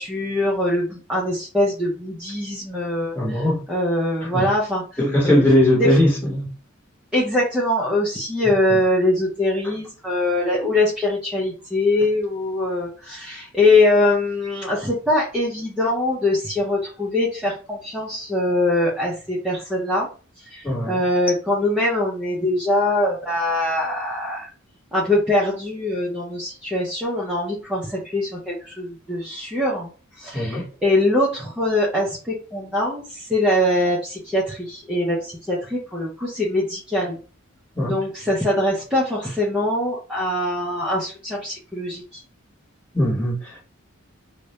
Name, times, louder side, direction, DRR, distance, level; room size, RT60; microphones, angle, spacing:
voice 1, 0.0-5.4 5.8-6.0 7.1-20.1 20.4-24.5 24.9-37.2 37.8-42.2, left 1 dB, 5° right, 0.4 m, -23 dB
voice 2, 3.1-3.6 4.2-4.4 5.0-6.5 20.6-21.0 30.3-30.6 37.8-38.0 42.9-43.6, left 1 dB, 10° left, 1.0 m, -19 dB
2.2 x 2.0 x 2.8 m
head